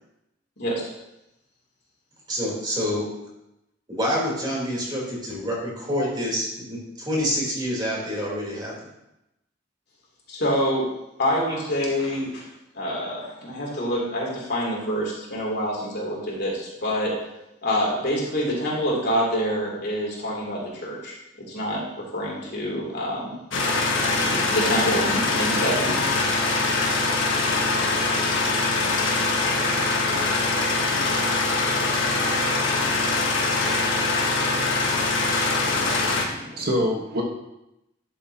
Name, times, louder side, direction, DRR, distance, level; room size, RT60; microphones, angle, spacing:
voice 1, 2.3-3.0 3.9-8.7, equal, 25° right, -5 dB, 3.5 m, -27 dB
voice 2, 10.3-10.9 11.2-12.4 12.7-17.1 17.6-21.2 21.5-21.8 22.1-23.3 24.1-26.0, equal, 60° left, -4 dB, 2.9 m, -26 dB
sound 1, 23.5-36.2, left 3 dB, 75° left, 1.4 m, -23 dB
voice 3, 35.8-37.2, equal, 55° right, -1 dB, 1.4 m, -27 dB
11.5 x 7.1 x 2.9 m, 0.88 s
head